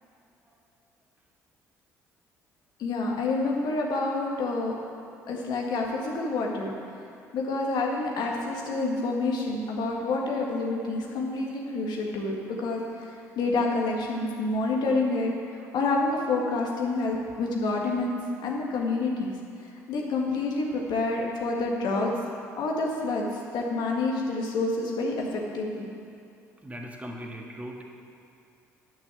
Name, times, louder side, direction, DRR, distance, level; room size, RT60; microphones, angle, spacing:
voice 1, 2.8-4.7 5.3-6.7 7.3-12.8 13.3-15.3 15.7-19.3 19.9-22.1 22.4-23.2 23.5-25.9, left 3 dB, 60° left, -1 dB, 1.8 m, -28 dB
voice 2, 26.6-27.8, equal, 15° right, 1 dB, 1.7 m, -39 dB
9.3 x 6.0 x 7.7 m, 2.5 s
hypercardioid pair, 55°, 8 cm